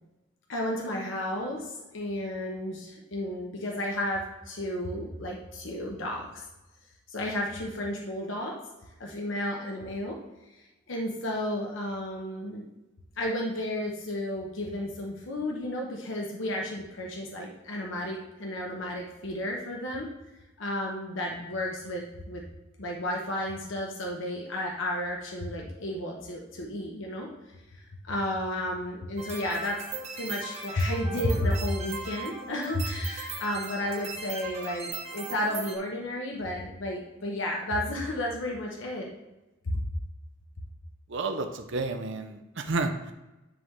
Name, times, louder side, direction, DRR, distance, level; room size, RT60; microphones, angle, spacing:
voice 1, 0.5-6.4 7.1-8.6 9.0-10.2 10.5-12.6 13.2-20.1 20.6-22.4 22.8-27.3 27.7-29.8 30.1-39.1 39.6-39.8, left 1 dB, 60° left, -1 dB, 0.9 m, -32 dB
sound 1, 29.2-35.8, right 4 dB, 30° right, 0.9 m, -38 dB
voice 2, 41.1-43.1, right 3 dB, 60° right, 6 dB, 0.6 m, -31 dB
10.0 x 3.7 x 3.1 m, 1.0 s
head